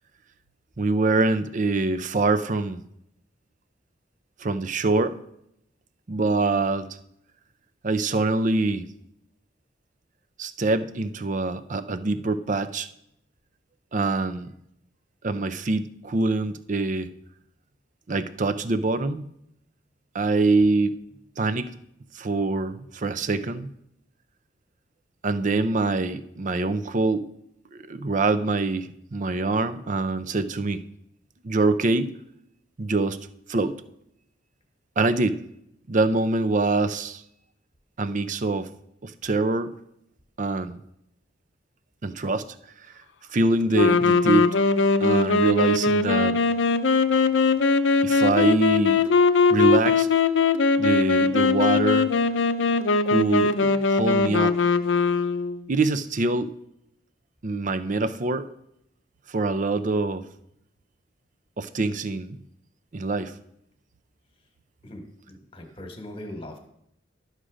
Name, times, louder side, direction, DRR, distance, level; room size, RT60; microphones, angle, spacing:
voice 1, 0.8-2.8 4.4-5.2 6.1-6.9 7.8-8.8 10.4-12.9 13.9-14.5 15.2-17.1 18.1-19.2 20.1-20.9 21.4-21.7 22.1-23.7 25.2-27.2 27.7-30.8 31.4-32.1 32.8-33.2 33.5-33.8 35.0-35.4 35.9-37.2 38.0-38.7 39.0-39.7 40.4-40.8 42.0-42.4 43.3-44.5 45.0-46.4 48.0-49.0 49.5-50.1 50.8-52.1 53.1-54.6 55.7-56.5 57.4-58.5 59.3-60.2 61.6-62.4 62.9-63.3, right 3 dB, 45° right, 13 dB, 0.5 m, -24 dB
sound 1, 43.7-55.6, left 4 dB, 80° left, 0.5 m, -21 dB
voice 2, 64.8-66.6, left 1 dB, 30° left, 5 dB, 1.4 m, -40 dB
11.5 x 6.5 x 5.0 m, 0.78 s
head